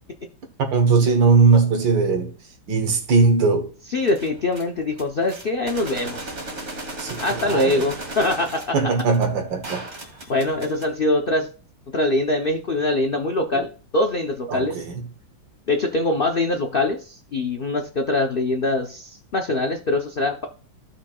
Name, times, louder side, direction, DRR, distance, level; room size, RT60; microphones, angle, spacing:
voice 1, 0.7-2.3 2.7-3.7 7.0-7.9 8.7-9.9 13.5-13.7 14.5-15.0, right 4 dB, 70° right, 2.0 m, -19 dB
voice 2, 3.9-6.3 7.2-8.8 10.3-11.5 11.9-13.7 13.9-14.8 15.7-20.5, left 2 dB, 70° left, 0.5 m, -23 dB
sound 1, 4.0-4.6 4.9-10.8, right 2 dB, 40° right, 1.8 m, -36 dB
15.0 x 5.7 x 2.3 m
omnidirectional pair, 2.1 m